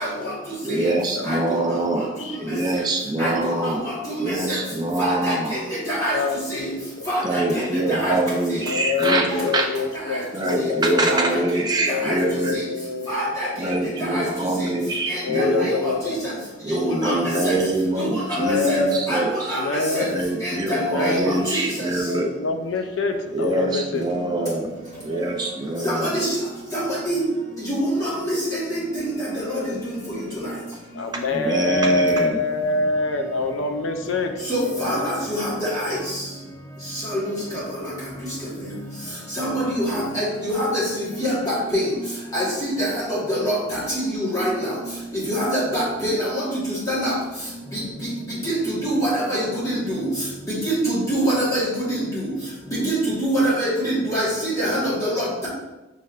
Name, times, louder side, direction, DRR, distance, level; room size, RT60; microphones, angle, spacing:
voice 1, 0.0-1.3 1.8-2.6 6.1-7.1 7.4-7.9 8.6-11.4 11.9-13.3 13.5-14.2 15.2-16.2 16.8-17.5 18.3-19.0 19.5-20.2 20.7-21.4 22.1-24.1 24.4-24.6 24.9-25.6 30.9-35.2, left 3 dB, 65° left, 5 dB, 0.4 m, -27 dB
voice 2, 0.6-2.1 2.4-3.9 4.2-5.5 7.2-9.7 10.3-12.6 13.6-15.7 16.6-19.3 20.1-22.3 23.3-24.7 25.0-26.2 31.3-32.4, right 2 dB, 20° right, 1 dB, 0.4 m, -24 dB
voice 3, 3.2-4.6 5.0-6.2 6.5-6.6 7.1-7.6 7.9-8.2 8.5-8.6 9.3-9.6 10.1-10.2 11.1-11.6 11.9-12.2 12.5-12.6 13.1-13.7 14.0-14.3 15.1-16.3 16.7-17.6 18.0-18.8 19.1-20.1 20.4-21.9 25.8-26.4 26.7-27.2 27.6-30.0 30.3-30.5 34.5-36.2 36.9-37.6 39.3-41.9 42.3-44.8 45.1-47.1 48.4-50.1 50.5-52.3 52.7-55.5, equal, 15° left, -8 dB, 1.4 m, -25 dB
5.3 x 3.3 x 2.4 m, 1.0 s
head